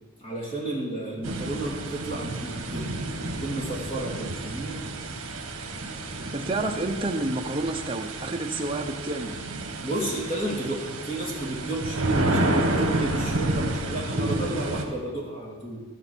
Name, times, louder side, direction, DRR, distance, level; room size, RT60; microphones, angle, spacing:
voice 1, 0.2-4.8 9.8-15.8, right 1 dB, 25° left, -4 dB, 2.5 m, -32 dB
sound 1, 1.2-14.8, right 2 dB, 65° right, 1.6 m, -30 dB
voice 2, 6.2-9.4, right 2 dB, 25° right, 2 dB, 0.8 m, -29 dB
14.0 x 7.0 x 6.2 m, 1.4 s
head